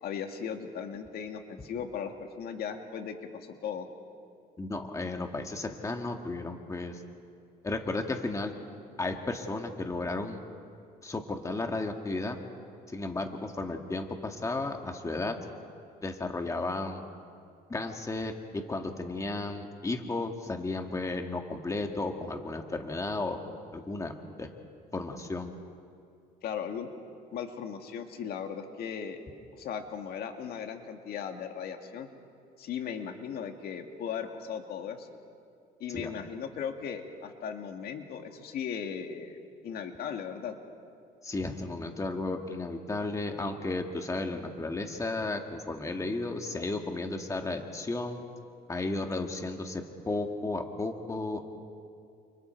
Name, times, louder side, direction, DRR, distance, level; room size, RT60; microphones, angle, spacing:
voice 1, 0.0-3.9 26.4-26.9 27.3-29.2 29.5-32.1 32.6-35.1 35.8-39.3 39.6-40.6, left 7 dB, 65° left, 5 dB, 2.0 m, -37 dB
voice 2, 4.6-7.0 7.6-8.5 9.0-10.4 11.0-12.4 12.9-15.4 16.0-17.0 17.7-23.4 23.7-24.5 24.9-25.5 35.9-36.1 41.2-48.2 48.7-51.4, left 2 dB, 20° left, 4 dB, 2.0 m, -34 dB
29.5 x 29.0 x 4.6 m, 2.4 s
cardioid pair, 110°, 17 cm